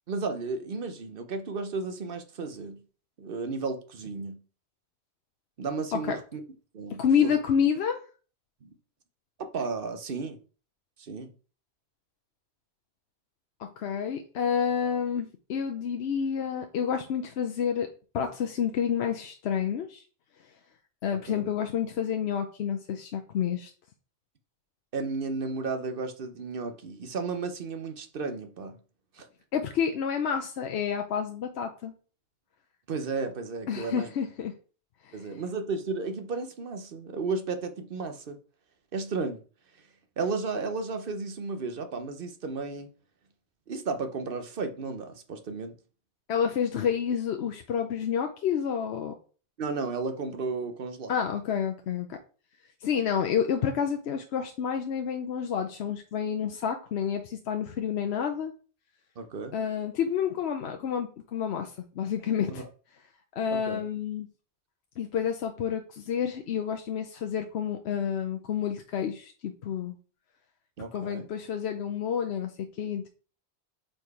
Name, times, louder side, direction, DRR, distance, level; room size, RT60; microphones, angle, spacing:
voice 1, 0.1-2.8 3.2-4.4 5.6-6.4 6.7-7.4 8.6-8.7 9.5-10.4 11.0-11.3 21.3-21.4 24.9-28.8 29.1-29.3 32.9-34.1 35.1-38.4 38.9-39.4 40.2-42.9 43.7-45.7 49.6-51.1 59.2-59.6 62.5-62.6 63.5-63.8 70.8-71.3, right 4 dB, 60° right, 1.0 m, -33 dB
voice 2, 7.0-8.0 13.6-17.9 18.1-20.0 21.0-23.7 29.5-31.9 33.7-34.5 35.0-35.3 46.3-49.1 51.1-52.2 52.8-58.5 59.5-62.6 63.4-64.3 65.0-69.9 70.9-73.1, left 7 dB, 80° left, 0.9 m, -29 dB
5.1 x 4.3 x 4.7 m
omnidirectional pair, 1.1 m